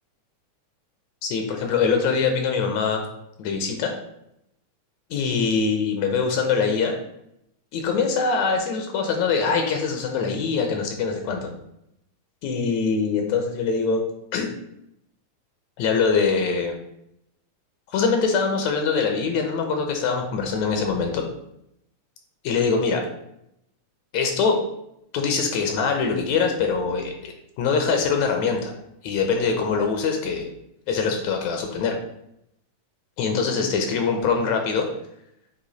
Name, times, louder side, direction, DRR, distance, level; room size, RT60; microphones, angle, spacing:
voice 1, 1.2-3.0 3.4-3.9 5.1-7.0 7.7-11.5 12.4-14.0 14.3-14.5 15.8-16.8 17.9-21.3 22.4-23.0 24.1-24.6 25.1-28.7 29.0-30.5 30.9-32.0 33.2-34.9, left 5 dB, 75° left, 4 dB, 2.0 m, -23 dB
8.1 x 3.0 x 4.0 m, 0.79 s
omnidirectional pair, 3.3 m